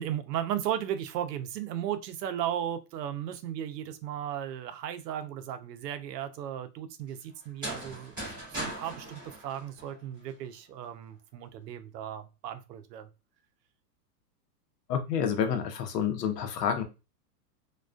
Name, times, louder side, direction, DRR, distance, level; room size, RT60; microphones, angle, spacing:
voice 1, 0.0-8.1 8.6-13.1, right 10 dB, 80° right, 0.6 m, -35 dB
sound 1, 7.4-10.3, right 1 dB, 15° right, 0.4 m, -39 dB
voice 2, 14.9-16.8, left 8 dB, 75° left, 0.7 m, -29 dB
2.3 x 2.2 x 2.4 m
supercardioid pair, 180°, 48 cm